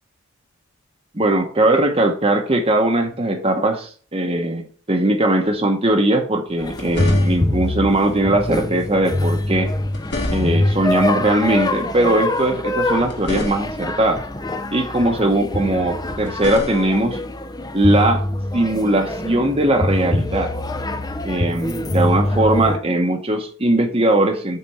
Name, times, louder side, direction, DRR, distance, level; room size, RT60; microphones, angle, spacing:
voice 1, 1.1-9.7 10.3-14.2 14.7-17.2 17.7-18.2 18.5-20.5 21.2-24.6, right 1 dB, 25° right, 3 dB, 1.0 m, -19 dB
sound 1, 6.5-7.7 9.6-10.8 12.8-14.0 16.0-17.1 19.1-19.3, left 2 dB, 55° left, 2.2 m, -31 dB
sound 2, 6.6-22.8, left 1 dB, 20° left, 0.6 m, -24 dB
8.6 x 4.2 x 7.0 m, 0.44 s
head